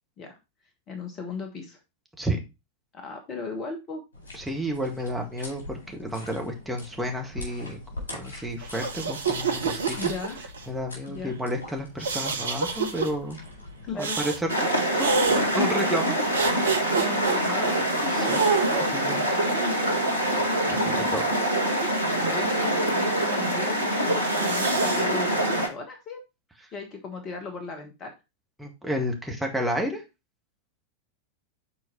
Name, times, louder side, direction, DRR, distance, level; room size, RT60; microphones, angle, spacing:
voice 1, 0.9-1.8 2.9-4.0 10.0-10.4 11.1-11.3 13.8-14.2 17.0-19.0 19.3-20.0 20.5-21.2 22.3-26.2 26.7-28.1, left 4 dB, 30° left, 5 dB, 1.3 m, -36 dB
sound 1, 4.1-13.9, left 2 dB, 70° left, 4.3 m, -43 dB
voice 2, 4.3-7.8 8.1-10.1 10.7-13.4 14.0-14.7 15.0-16.2 18.2-18.4 18.9-19.2 20.7-21.2 28.6-30.0, equal, 5° right, 1 dB, 1.8 m, -31 dB
sound 2, 8.6-10.6 12.0-13.1 14.0-14.4 15.0-15.4 16.3-17.4 18.2-19.1 19.9-21.0 24.1-25.0, right 5 dB, 70° right, 0.9 m, -28 dB
sound 3, 14.5-25.7, right 1 dB, 85° right, 1.4 m, -25 dB
6.9 x 4.5 x 4.3 m, 0.25 s
figure-of-eight pair, 90°, 0 cm